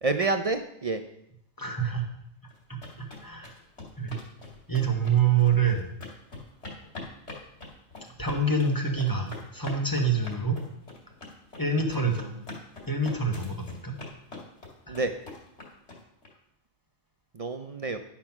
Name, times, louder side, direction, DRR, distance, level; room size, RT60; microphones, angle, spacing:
voice 1, 0.0-1.0 12.0-12.1 14.9-15.1 17.3-18.0, right 3 dB, 45° right, 7 dB, 0.4 m, -28 dB
voice 2, 1.6-2.1 3.2-3.5 4.0-4.2 4.7-5.9 8.2-10.6 11.6-12.2 12.9-14.0 14.9-15.0, right 5 dB, 15° left, 1 dB, 1.3 m, -26 dB
sound 1, 2.5-16.3, left 2 dB, 55° left, 2.5 m, -43 dB
11.0 x 5.9 x 5.9 m, 0.76 s
omnidirectional pair, 1.3 m